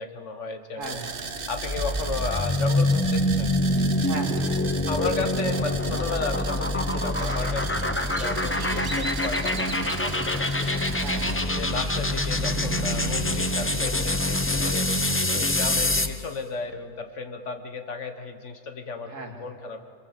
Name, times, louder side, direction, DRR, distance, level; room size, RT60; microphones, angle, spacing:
voice 1, 0.0-1.1 1.5-3.5 4.9-9.7 10.0-10.8 11.6-14.9 15.3-19.8, left 4 dB, 65° left, 7 dB, 1.7 m, -34 dB
voice 2, 0.7-1.3 4.0-4.6 10.9-11.5 19.0-19.5, right 3 dB, 80° right, 3 dB, 2.6 m, -38 dB
sound 1, 0.8-11.4, right 5 dB, 45° right, 1.2 m, -36 dB
sound 2, 1.4-16.2, left 1 dB, 15° left, 0.6 m, -25 dB
Crow, 7.2-13.4, right 2 dB, 30° right, 0.4 m, -37 dB
26.5 x 22.5 x 7.7 m, 2.3 s
omnidirectional pair, 1.3 m